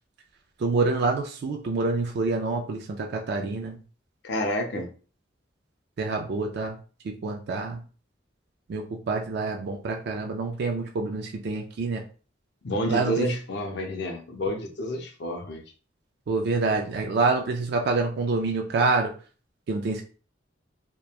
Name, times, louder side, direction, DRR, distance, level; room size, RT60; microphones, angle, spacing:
voice 1, 0.6-3.8 6.0-6.8 7.0-7.8 8.7-12.0 12.9-13.3 16.3-19.1 19.7-20.0, right 3 dB, 60° right, 2 dB, 0.3 m, -27 dB
voice 2, 4.2-4.9 12.6-15.6, equal, 60° left, 4 dB, 0.5 m, -29 dB
2.9 x 2.2 x 2.3 m, 0.38 s
head